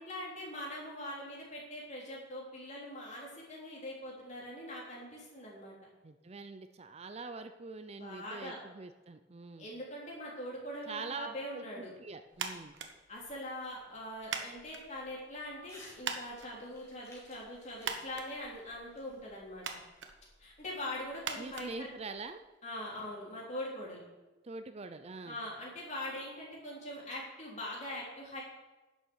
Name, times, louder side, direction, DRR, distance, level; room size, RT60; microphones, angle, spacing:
voice 1, 0.0-5.7 8.0-8.6 9.6-11.9 13.1-19.7 20.4-21.9 22.6-24.0 25.3-28.4, left 1 dB, 40° left, -3 dB, 3.6 m, -42 dB
voice 2, 6.0-9.7 10.9-11.3 11.5-12.8 21.4-22.4 24.4-25.4, right 3 dB, 35° right, 9 dB, 0.5 m, -44 dB
sound 1, 12.3-22.5, right 5 dB, 75° right, 1.1 m, -45 dB
Crumpling crinkling / Tearing, 15.7-16.0 16.3-19.7, left 1 dB, 15° left, 3.4 m, -57 dB
10.5 x 7.2 x 6.3 m, 1.2 s
head